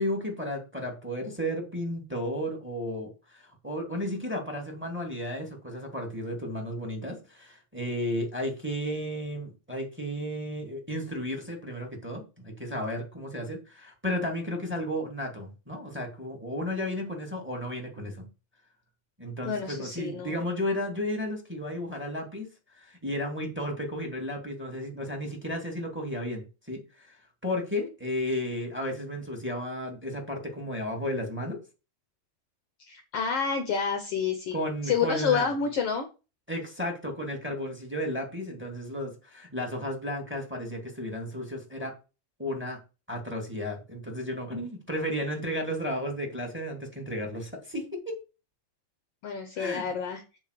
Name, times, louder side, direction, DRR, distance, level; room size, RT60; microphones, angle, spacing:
voice 1, 0.0-18.3 19.2-22.5 22.7-31.6 34.5-35.5 36.5-41.9 42.4-42.8 43.1-48.2 49.6-49.9, equal, 5° right, 2 dB, 1.3 m, -33 dB
voice 2, 19.4-20.3 32.9-34.5 34.8-36.1 49.2-50.2, left 6 dB, 75° left, 6 dB, 1.4 m, -28 dB
7.8 x 4.0 x 6.6 m, 0.31 s
omnidirectional pair, 4.0 m